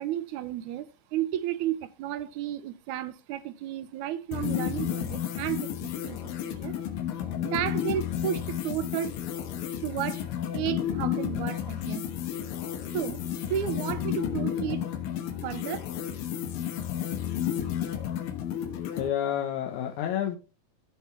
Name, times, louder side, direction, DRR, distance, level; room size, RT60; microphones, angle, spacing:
voice 1, 0.0-6.2 6.6-6.8 7.4-9.1 9.8-10.2 10.5-12.1 12.9-13.2 13.5-14.8 15.4-15.9, right 11 dB, 75° right, 1.9 m, -32 dB
sound 1, 4.3-19.1, left 10 dB, 85° left, 3.0 m, -32 dB
voice 2, 19.0-20.4, left 10 dB, 70° left, 2.3 m, -29 dB
15.0 x 5.3 x 3.2 m
omnidirectional pair, 3.9 m